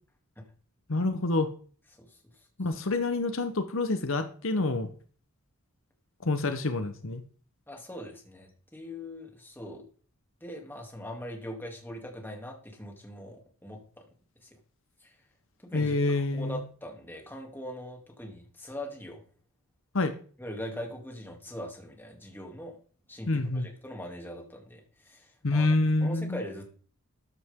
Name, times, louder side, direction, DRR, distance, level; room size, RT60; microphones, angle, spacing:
voice 1, 0.9-1.5 2.6-4.9 6.2-7.2 15.7-16.6 19.9-20.1 23.3-23.7 25.4-26.4, left 2 dB, 60° left, 9 dB, 1.0 m, -27 dB
voice 2, 7.7-9.8 10.4-13.8 14.4-14.5 15.0-15.1 15.6-19.2 20.4-22.8 23.1-26.7, equal, 10° left, 1 dB, 2.7 m, -41 dB
14.0 x 9.7 x 3.7 m, 0.43 s
head